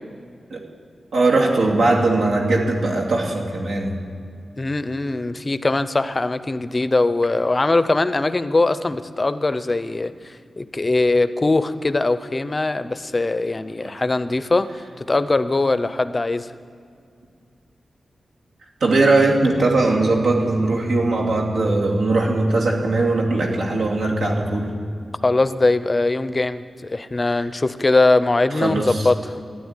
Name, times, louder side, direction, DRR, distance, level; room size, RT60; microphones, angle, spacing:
voice 1, 1.1-4.0 18.8-24.7 28.5-29.1, right 2 dB, 90° right, -1 dB, 2.5 m, -19 dB
voice 2, 4.6-14.7 15.0-16.5 25.2-29.4, left 2 dB, 25° left, 13 dB, 0.5 m, -21 dB
13.0 x 11.0 x 9.7 m, 2.3 s
wide cardioid pair, 170°, 0 cm